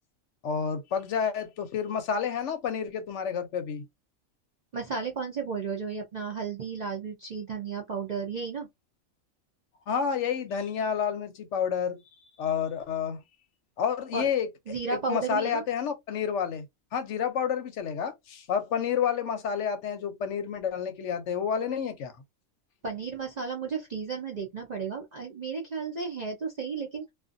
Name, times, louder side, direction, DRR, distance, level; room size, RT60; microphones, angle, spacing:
voice 1, 0.4-3.9 9.9-12.0 12.4-13.2 13.8-14.5 14.9-16.7 16.9-22.1, left 7 dB, 65° left, 0.8 m, -29 dB
voice 2, 4.7-8.7 14.1-14.3 14.7-15.6 22.8-27.1, right 5 dB, 55° right, 0.4 m, -33 dB
2.5 x 2.4 x 2.5 m
omnidirectional pair, 1.4 m